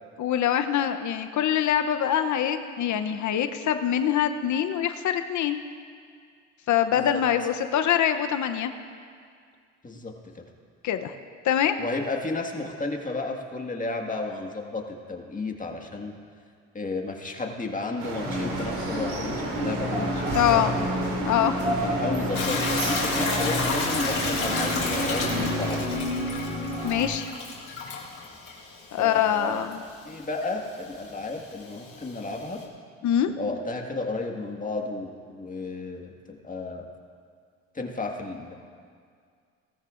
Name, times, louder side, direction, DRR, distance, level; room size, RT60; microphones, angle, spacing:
voice 1, 0.2-5.6 6.7-8.7 10.8-11.1 11.4-11.7 20.3-20.7 21.2-21.8 26.8-27.3 28.9-29.8 33.0-33.3, left 10 dB, 55° left, 9 dB, 0.8 m, -24 dB
voice 2, 9.8-10.4 11.8-16.1 16.7-20.8 21.8-25.9 28.9-29.6 30.0-32.6 33.4-36.9 37.7-38.5, left 3 dB, 25° left, 2 dB, 1.7 m, -33 dB
sound 1, 18.0-25.8, right 2 dB, 80° right, 2.8 m, -33 dB
sound 2, 18.2-27.1, equal, 20° right, 3.3 m, -30 dB
Hiss / Toilet flush / Trickle dribble, 22.3-32.6, left 4 dB, 40° left, 3.8 m, -33 dB
19.0 x 13.5 x 2.5 m, 2.1 s
supercardioid pair, 75°, 34 cm